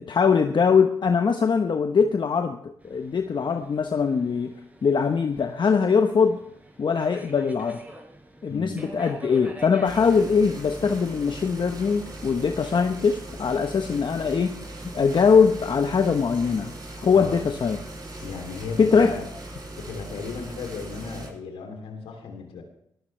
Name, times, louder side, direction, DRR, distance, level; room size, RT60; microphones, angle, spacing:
voice 1, 0.0-4.5 4.8-6.4 6.8-7.8 8.4-14.5 14.9-16.7 17.0-17.8 18.8-19.1, left 5 dB, 55° left, 5 dB, 1.1 m, -22 dB
Subway metro underground, 2.8-15.6, right 1 dB, 15° right, 4.4 m, -47 dB
voice 2, 8.5-8.9 17.1-17.5 18.2-19.3 19.7-22.6, left 4 dB, 80° left, 3 dB, 3.1 m, -36 dB
sound 1, 9.8-21.3, right 2 dB, 45° right, 7.0 m, -39 dB
19.5 x 14.5 x 3.4 m, 0.71 s
supercardioid pair, 45°, 10 cm